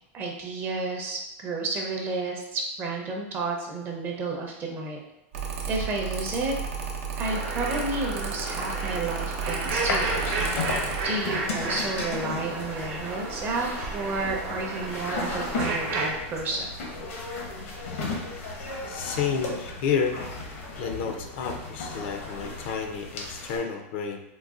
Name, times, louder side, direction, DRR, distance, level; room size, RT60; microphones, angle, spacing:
voice 1, 0.1-5.0 5.7-6.5 7.2-10.1 11.0-16.7, right 3 dB, 30° right, 0 dB, 0.6 m, -31 dB
Mechanical fan, 5.3-11.0, right 6 dB, 75° right, 0.6 m, -33 dB
sound 1, 7.2-16.1, right 3 dB, 50° right, 0.9 m, -33 dB
sound 2, 9.7-23.6, left 2 dB, 85° left, 0.8 m, -35 dB
voice 2, 18.9-20.2 20.8-24.2, left 6 dB, 60° left, 5 dB, 0.4 m, -30 dB
3.8 x 2.2 x 2.4 m, 0.87 s
supercardioid pair, 145°, 7 cm